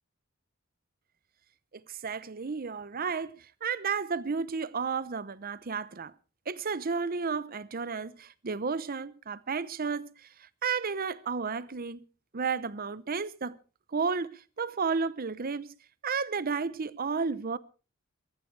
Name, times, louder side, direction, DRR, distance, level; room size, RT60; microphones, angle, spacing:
voice 1, 1.9-6.1 6.5-12.1 12.3-13.6 13.9-15.7 16.0-17.6, right 5 dB, 45° right, 0.7 m, -32 dB
23.0 x 14.0 x 3.3 m
head